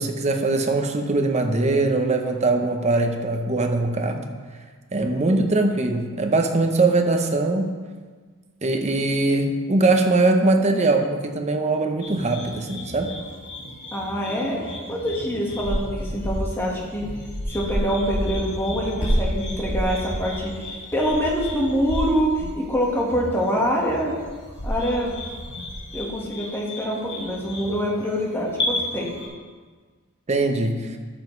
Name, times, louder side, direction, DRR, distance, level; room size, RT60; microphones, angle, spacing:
voice 1, 0.0-4.2 4.9-7.7 8.6-13.1 30.3-31.0, right 2 dB, 30° right, 4 dB, 0.8 m, -21 dB
sound 1, 12.0-29.3, equal, 55° left, 2.4 m, -31 dB
voice 2, 13.9-14.6 14.9-17.1 17.5-24.1 24.6-25.1 25.9-29.1, equal, 10° left, -3 dB, 1.6 m, -25 dB
12.5 x 7.2 x 3.2 m, 1.5 s
head